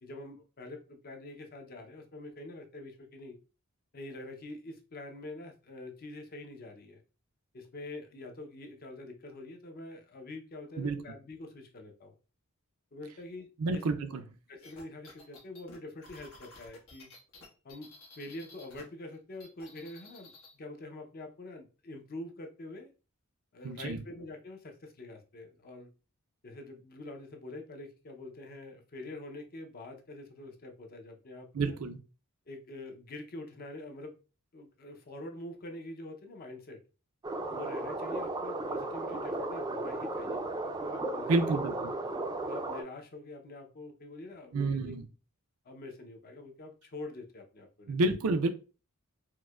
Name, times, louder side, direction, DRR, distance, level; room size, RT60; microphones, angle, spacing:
voice 1, 0.0-3.4 3.9-7.0 7.5-12.2 12.9-13.8 14.5-17.1 17.6-22.9 23.5-25.9 26.4-31.8 32.5-34.1 34.5-36.8 37.5-41.9 42.4-44.9 45.7-48.0, left 2 dB, 45° left, 0.6 m, -45 dB
voice 2, 13.6-14.2 23.6-24.0 31.5-32.0 41.3-41.9 44.5-45.1 47.9-48.5, right 3 dB, 80° right, 0.5 m, -29 dB
sound 1, 14.6-18.8 19.1-20.5, left 2 dB, 85° left, 1.2 m, -53 dB
sound 2, 37.2-42.8, right 2 dB, 20° right, 0.4 m, -35 dB
4.6 x 2.1 x 2.3 m
head